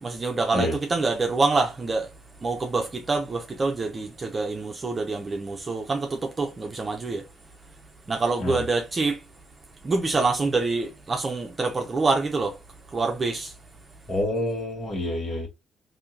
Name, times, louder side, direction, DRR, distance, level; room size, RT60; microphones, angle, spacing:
voice 1, 0.0-2.1 2.4-7.2 8.1-9.2 9.8-12.6 12.9-13.5, right 3 dB, 30° right, 0.7 m, -26 dB
voice 2, 14.1-15.5, left 1 dB, 45° left, 1.5 m, -27 dB
3.5 x 2.7 x 2.8 m
cardioid pair, 90°, 0 cm